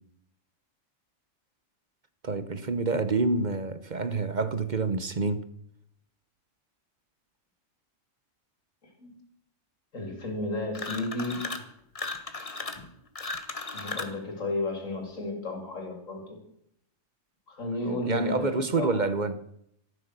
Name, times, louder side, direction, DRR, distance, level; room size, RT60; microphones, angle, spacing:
voice 1, 2.2-5.4 18.0-19.5, right 3 dB, 40° right, 0.9 m, -27 dB
voice 2, 8.8-9.1 9.9-11.7 13.7-16.4 17.5-19.0, left 2 dB, 75° left, 3.8 m, -33 dB
sound 1, 10.7-11.7 11.9-14.2, left 3 dB, 25° left, 1.3 m, -36 dB
14.0 x 12.0 x 6.7 m
omnidirectional pair, 1.4 m